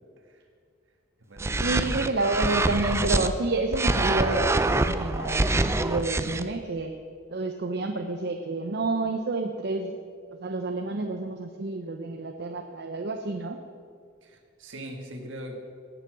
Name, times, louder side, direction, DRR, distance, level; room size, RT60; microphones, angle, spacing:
voice 1, 0.2-0.5 1.2-1.9 14.2-15.6, equal, 70° right, 3 dB, 1.8 m, -42 dB
sound 1, 1.4-3.3 3.7-6.4, right 2 dB, 15° right, 0.4 m, -25 dB
voice 2, 1.6-4.5 4.8-6.9 7.3-10.0 10.4-13.6, right 2 dB, 55° right, 5 dB, 0.7 m, -29 dB
17.5 x 6.9 x 6.2 m, 2.2 s
head